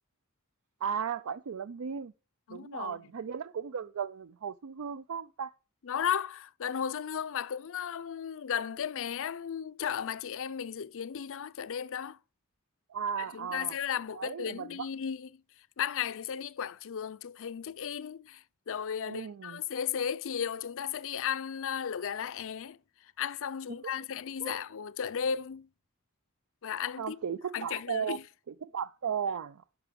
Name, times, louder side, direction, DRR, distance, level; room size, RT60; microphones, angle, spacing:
voice 1, 0.8-2.1 2.5-5.5 12.9-13.8 14.1-14.9 19.0-19.6 23.8-23.9 24.4-24.6 27.0-28.2 28.6-29.6, right 7 dB, 65° right, 0.4 m, -36 dB
voice 2, 2.5-3.0 5.8-12.2 13.3-15.3 15.8-22.8 23.2-25.7 26.6-27.2 27.5-28.2, left 8 dB, 65° left, 0.5 m, -35 dB
10.5 x 5.9 x 6.9 m
head